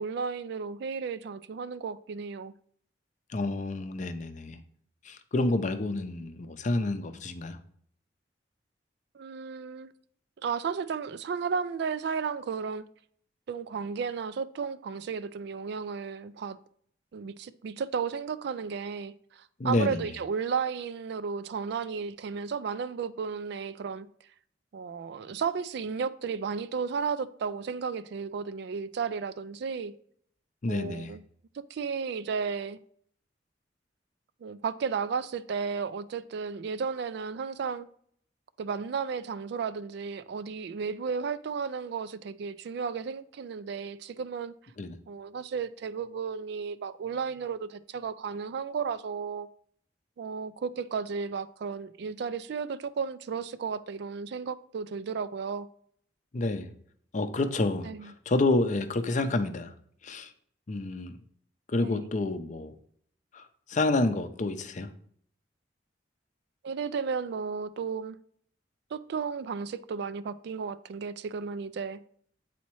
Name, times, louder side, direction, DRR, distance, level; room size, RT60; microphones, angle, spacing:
voice 1, 0.0-2.5 9.1-9.9 10.4-12.8 13.5-16.6 17.1-24.1 24.7-29.9 30.7-31.2 31.5-32.8 34.4-37.9 38.6-44.5 45.1-49.5 50.2-55.7 57.8-58.1 61.8-62.0 66.6-68.2 68.9-72.0, right 5 dB, 65° right, 0.3 m, -33 dB
voice 2, 3.3-4.6 5.1-7.6 19.6-20.0 30.6-31.1 44.8-45.0 56.3-56.7 57.1-59.7 60.0-60.3 60.7-61.1 61.7-62.7 63.3-63.4 63.7-64.9, left 2 dB, 40° left, 0.5 m, -29 dB
8.3 x 4.2 x 3.0 m
head